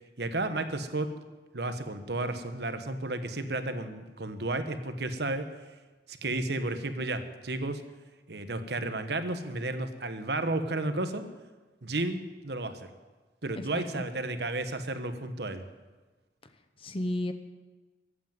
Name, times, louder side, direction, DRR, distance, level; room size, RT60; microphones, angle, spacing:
voice 1, 0.2-1.2 1.5-5.5 6.1-7.8 8.3-11.3 11.8-12.9 13.4-15.6, right 2 dB, 70° right, 8 dB, 1.2 m, -32 dB
voice 2, 13.6-14.0 16.8-17.3, left 1 dB, 30° left, 9 dB, 0.8 m, -33 dB
15.0 x 8.5 x 9.3 m, 1.3 s
head